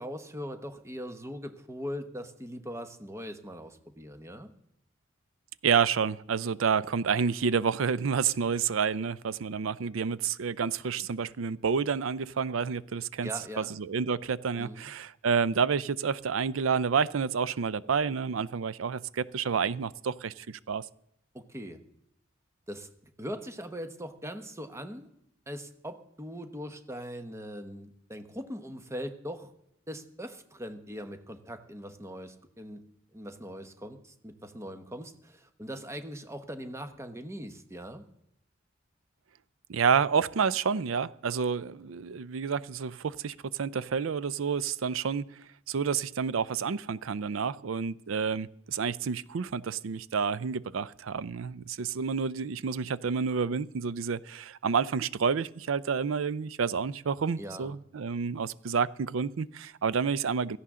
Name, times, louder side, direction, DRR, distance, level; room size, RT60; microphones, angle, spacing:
voice 1, 0.0-4.5 13.2-13.8 14.6-14.9 21.3-21.8 22.7-25.1 25.5-29.5 29.9-32.8 33.1-38.1 57.4-57.7, equal, 15° right, 1.0 m, -41 dB
voice 2, 5.6-13.3 13.6-20.8 39.7-45.2 45.7-60.6, right 6 dB, 85° right, 0.5 m, -29 dB
16.5 x 14.5 x 3.7 m
head